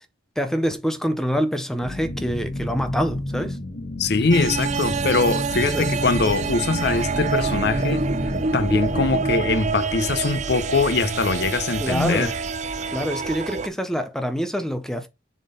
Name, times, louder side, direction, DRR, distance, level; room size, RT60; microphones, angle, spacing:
voice 1, 0.4-3.6 5.0-5.1 5.7-5.9 11.8-12.3 12.9-15.1, equal, 5° left, 0.7 m, -26 dB
sound 1, 1.8-9.5, left 1 dB, 80° left, 1.5 m, -30 dB
voice 2, 4.0-8.0 8.5-12.3, left 3 dB, 65° left, 0.7 m, -22 dB
Spacial swirl, 4.3-13.7, right 5 dB, 40° right, 0.5 m, -27 dB
7.2 x 3.8 x 3.9 m
head